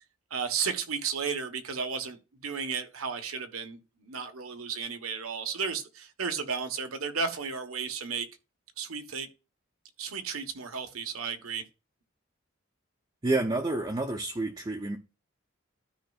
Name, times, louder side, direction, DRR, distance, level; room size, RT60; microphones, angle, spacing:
voice 1, 0.3-8.3 8.8-9.3 10.0-11.6, right 6 dB, 90° right, 1.2 m, -33 dB
voice 2, 13.2-15.0, right 2 dB, 20° right, 0.6 m, -29 dB
13.0 x 5.2 x 2.4 m
head